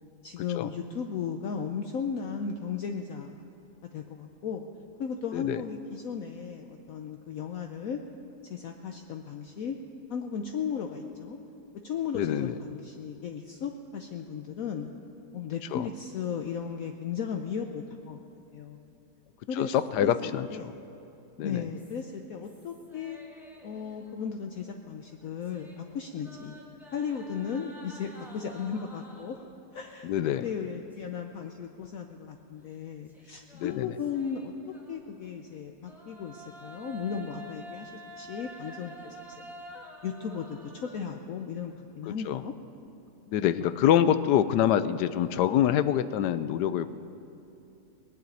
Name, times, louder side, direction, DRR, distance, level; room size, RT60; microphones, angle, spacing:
voice 1, 0.2-3.4 3.9-4.7 5.0-8.0 8.5-9.8 10.1-11.4 11.8-14.9 15.3-18.2 18.5-18.8 19.5-19.7 20.0-20.7 21.4-23.2 23.6-26.6 26.9-29.5 29.7-30.1 30.4-42.5, left 6 dB, 65° left, 4 dB, 1.0 m, -36 dB
voice 2, 12.1-12.6 15.7-15.9 19.6-20.7 21.4-21.7 30.0-30.5 33.5-33.9 42.1-42.4 43.3-46.9, left 10 dB, 85° left, 13 dB, 1.2 m, -26 dB
sound 1, 21.7-24.6 24.9-29.6 30.3-31.4 31.7-31.8 33.1-35.3 35.8-41.0, right 1 dB, ahead, 1.6 m, -49 dB
19.5 x 7.5 x 9.3 m, 2.8 s
omnidirectional pair, 1.8 m